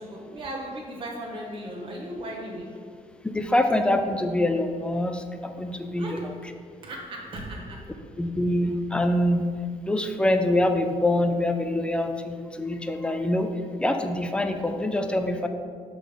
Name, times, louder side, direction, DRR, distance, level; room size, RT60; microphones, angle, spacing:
voice 1, 0.0-2.7 5.9-6.2 6.8-7.9, right 1 dB, 45° right, -2 dB, 1.4 m, -36 dB
voice 2, 3.3-6.2 8.2-9.4 9.8-13.5 13.8-15.5, left 1 dB, 10° left, 6 dB, 0.4 m, -25 dB
6.2 x 3.9 x 5.2 m, 2.1 s
cardioid pair, 150°, 13 cm